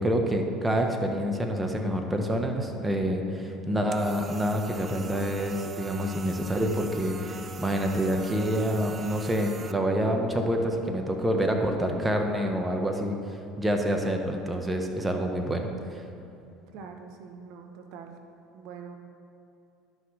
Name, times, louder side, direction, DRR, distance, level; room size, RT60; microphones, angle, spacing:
voice 1, 0.0-13.2 13.6-16.0, equal, 15° right, 3 dB, 0.9 m, -27 dB
sound 1, 3.9-9.7, right 5 dB, 35° right, 0.4 m, -43 dB
voice 2, 16.7-18.1 18.5-19.0, right 6 dB, 70° right, 5 dB, 0.7 m, -44 dB
11.5 x 5.9 x 3.2 m, 2.6 s
supercardioid pair, 95°, 0 cm